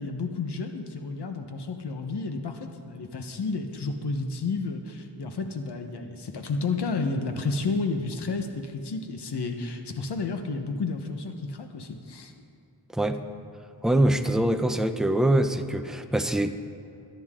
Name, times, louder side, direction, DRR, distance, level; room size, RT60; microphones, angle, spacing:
voice 1, 0.0-12.3, left 3 dB, 80° left, 5 dB, 1.2 m, -31 dB
voice 2, 12.9-13.3 13.8-16.5, right 1 dB, ahead, 7 dB, 0.6 m, -24 dB
23.0 x 10.5 x 3.8 m, 2.5 s
wide cardioid pair, 140°, 40 cm